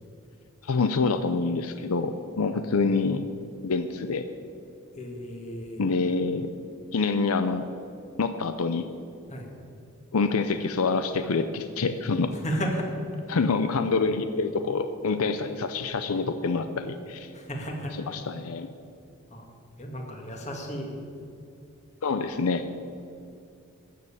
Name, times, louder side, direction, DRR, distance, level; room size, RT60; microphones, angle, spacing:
voice 1, 0.6-3.2 3.6-4.3 5.8-6.5 6.9-7.7 8.2-8.9 10.1-12.4 13.3-17.3 18.1-18.7 22.0-22.7, left 4 dB, 85° left, 10 dB, 0.6 m, -26 dB
voice 2, 2.5-2.9 5.0-5.8 9.3-9.5 12.4-13.0 17.3-18.0 19.3-19.4 19.8-20.9, equal, 35° left, 2 dB, 1.9 m, -33 dB
13.5 x 6.8 x 8.5 m, 2.5 s
head